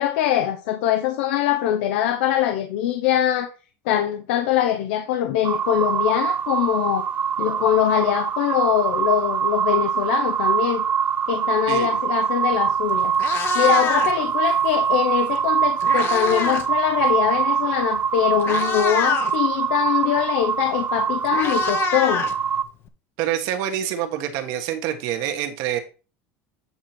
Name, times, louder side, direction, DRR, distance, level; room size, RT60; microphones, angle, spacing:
voice 1, 0.0-3.5 3.8-7.1 7.4-10.8 11.3-22.3, left 11 dB, 75° left, 0.9 m, -23 dB
sound 1, 5.4-22.6, right 7 dB, 25° right, 0.6 m, -23 dB
Meow, 12.5-12.7 13.0-14.3 15.4-16.7 17.0-17.3 18.0-18.1 18.4-19.3 20.6-20.7 21.0-22.9, left 8 dB, 35° left, 0.9 m, -27 dB
voice 2, 23.2-25.8, right 10 dB, 60° right, 1.5 m, -26 dB
8.7 x 4.6 x 4.4 m
supercardioid pair, 150°, 7 cm